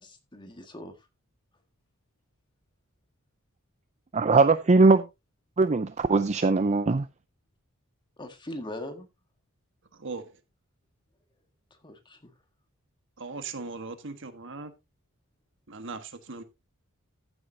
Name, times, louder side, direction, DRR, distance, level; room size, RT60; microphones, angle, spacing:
voice 1, 0.0-1.0 8.2-9.1 11.8-12.3, left 1 dB, 20° left, 1.8 m, -40 dB
voice 2, 4.1-5.1 5.6-7.1, right 3 dB, 30° right, 0.5 m, -20 dB
voice 3, 9.9-10.3 13.2-14.7 15.7-16.4, right 4 dB, 60° right, 1.4 m, -38 dB
14.5 x 8.0 x 2.7 m
head